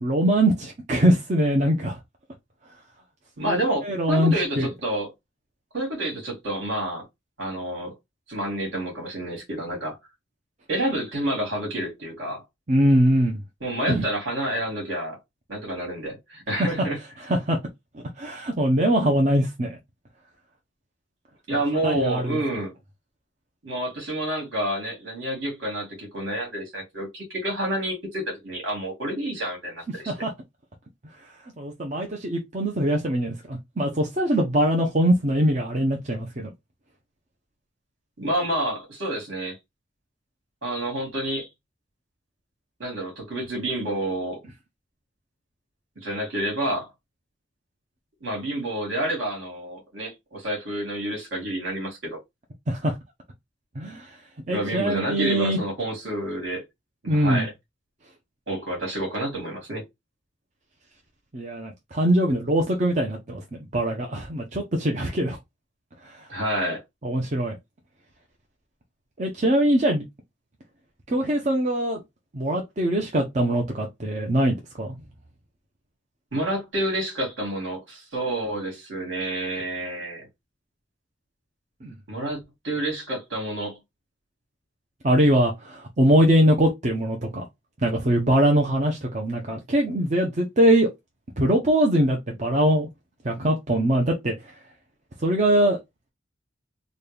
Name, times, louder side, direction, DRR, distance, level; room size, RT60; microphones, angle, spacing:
voice 1, 0.0-2.0 3.4-4.7 12.7-13.4 13.9-14.0 16.6-16.9 17.3-17.6 18.2-19.7 21.8-22.4 30.1-30.3 31.6-36.5 52.7-53.0 53.8-54.2 54.5-55.6 57.1-57.5 61.3-63.4 63.7-65.4 66.0-66.3 67.0-67.6 69.2-70.0 71.1-72.0 72.3-74.9 81.8-81.9 85.0-87.5 87.8-90.9 91.4-92.9 93.2-94.3 95.2-95.8, right 1 dB, 35° right, 0.7 m, -22 dB
voice 2, 3.4-5.1 5.7-7.1 7.4-7.9 8.3-10.0 10.7-12.4 13.6-15.2 15.5-17.0 21.5-22.7 23.6-30.1 38.2-39.6 40.6-41.5 42.8-44.4 46.0-46.9 48.2-52.2 54.5-56.6 57.0-57.5 58.5-59.8 66.3-66.8 76.3-80.2 82.1-83.8, right 1 dB, 70° right, 2.4 m, -29 dB
4.1 x 2.3 x 3.4 m
head